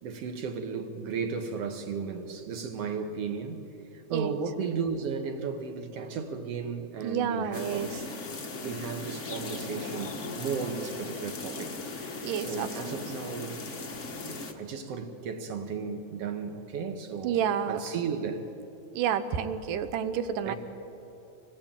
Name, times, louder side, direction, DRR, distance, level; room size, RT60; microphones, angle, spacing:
voice 1, 0.0-3.6 3.9-7.9 8.6-13.6 14.2-17.4 17.7-18.5 20.4-20.6, right 5 dB, 55° right, 2.4 m, -35 dB
voice 2, 7.0-7.9 12.2-13.0 17.2-17.8 18.9-20.6, right 8 dB, 80° right, 2.5 m, -30 dB
sound 1, 7.5-14.5, left 3 dB, 40° left, 1.0 m, -38 dB
26.5 x 19.5 x 9.0 m
omnidirectional pair, 3.8 m